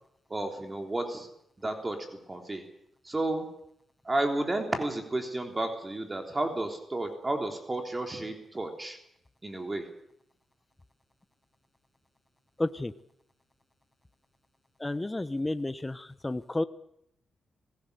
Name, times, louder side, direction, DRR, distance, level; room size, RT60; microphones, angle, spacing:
voice 1, 0.3-1.3 1.6-2.0 2.3-2.6 3.0-3.5 4.0-9.0 9.4-9.8, right 2 dB, 25° right, 3 dB, 3.4 m, -32 dB
voice 2, 12.6-12.9 14.8-16.6, left 2 dB, 20° left, 12 dB, 1.0 m, -31 dB
25.0 x 16.5 x 6.8 m, 0.75 s
cardioid pair, 65°, 0 cm